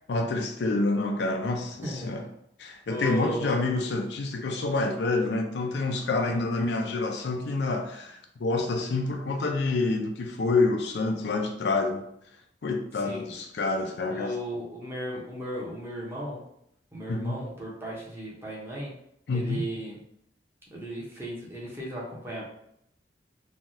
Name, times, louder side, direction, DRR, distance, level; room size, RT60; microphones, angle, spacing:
voice 1, 0.1-2.3 2.6-12.1 12.6-14.3 17.1-17.4 19.3-19.6, left 3 dB, 70° left, 3 dB, 0.4 m, -27 dB
voice 2, 1.8-2.2 2.9-3.5 6.3-6.4 13.0-13.2 14.1-16.4 16.9-18.9 19.3-20.0 20.7-22.4, equal, 15° right, -4 dB, 0.8 m, -36 dB
3.2 x 2.3 x 2.6 m, 0.74 s
head